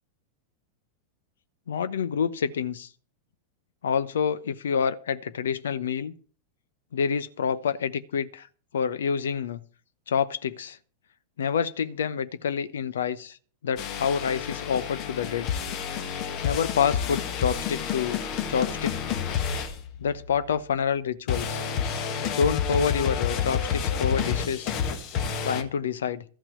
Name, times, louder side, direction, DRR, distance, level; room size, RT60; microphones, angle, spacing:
voice 1, 1.7-2.9 3.8-6.1 6.9-8.5 8.7-9.6 10.1-10.8 11.4-13.4 13.6-15.5 16.4-18.2 18.5-19.2 20.0-21.6 22.4-24.7 25.4-26.2, left 7 dB, 65° left, 0.8 m, -27 dB
sound 1, 13.8-20.5 21.3-25.6, left 7 dB, 40° left, 1.4 m, -29 dB
13.5 x 5.9 x 8.1 m
figure-of-eight pair, 90°, 0 cm